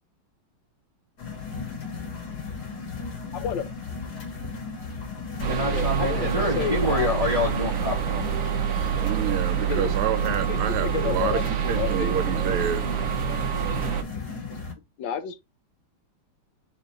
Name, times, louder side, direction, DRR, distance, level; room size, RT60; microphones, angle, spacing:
sound 1, 1.2-14.7, left 4 dB, 50° left, 1.9 m, -35 dB
voice 1, 3.3-3.6 5.7-7.2 9.7-9.9 10.5-12.1 15.0-15.4, left 8 dB, 75° left, 1.1 m, -31 dB
voice 2, 5.4-8.3, left 2 dB, 30° right, 0.7 m, -27 dB
sound 2, 5.4-14.0, right 9 dB, 65° right, 0.8 m, -27 dB
voice 3, 9.0-12.9, right 9 dB, 80° right, 1.5 m, -29 dB
4.3 x 2.6 x 4.5 m
omnidirectional pair, 2.4 m